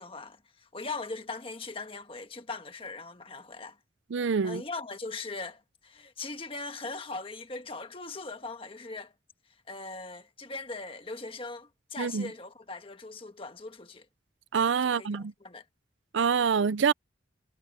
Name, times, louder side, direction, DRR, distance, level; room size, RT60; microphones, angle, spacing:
voice 1, 0.0-3.8 4.4-9.1 9.5-14.1 14.8-15.6, left 3 dB, 30° left, 1.4 m, -40 dB
voice 2, 4.1-4.6 12.0-12.3 14.5-15.3 16.1-16.9, right 6 dB, 85° right, 0.5 m, -26 dB
head